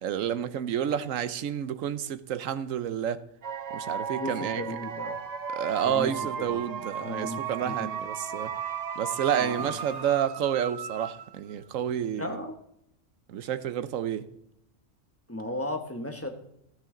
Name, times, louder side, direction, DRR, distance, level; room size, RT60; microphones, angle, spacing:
voice 1, 0.0-3.2 3.7-4.6 5.5-8.5 9.0-12.4 13.3-14.2, right 9 dB, 75° right, 1.1 m, -30 dB
sound 1, 3.4-11.5, right 7 dB, 50° right, 0.5 m, -35 dB
voice 2, 4.2-5.2 5.8-6.1 6.4-6.6 7.0-7.9 9.3-9.7 12.2-12.5 15.3-16.3, left 1 dB, 10° left, 1.1 m, -35 dB
12.5 x 10.5 x 3.8 m
omnidirectional pair, 1.4 m